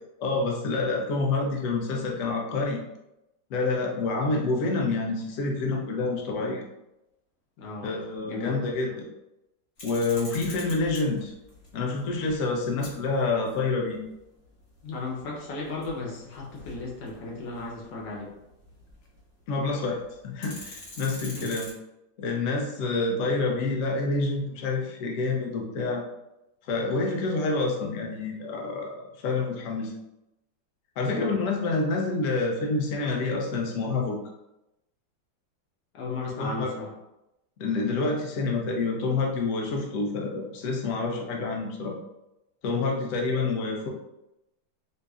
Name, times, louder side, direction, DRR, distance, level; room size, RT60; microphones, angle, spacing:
voice 1, 0.2-2.8 3.5-6.6 7.8-9.0 9.8-11.3 11.7-14.0 19.5-20.0 20.2-21.7 22.2-26.0 26.7-29.9 31.0-34.2 36.4-36.7 37.6-42.0 42.6-43.9, left 3 dB, 65° left, 0 dB, 0.8 m, -27 dB
voice 2, 7.6-7.9 8.2-8.5 8.9-9.0 14.8-18.3 21.4-21.5 31.0-31.4 35.9-36.9, left 3 dB, 85° left, -2 dB, 1.5 m, -35 dB
sound 1, 9.8-19.3 19.6-19.7 20.0-21.7, left 2 dB, 50° left, 1.1 m, -45 dB
5.2 x 2.0 x 2.3 m, 0.90 s
omnidirectional pair, 2.0 m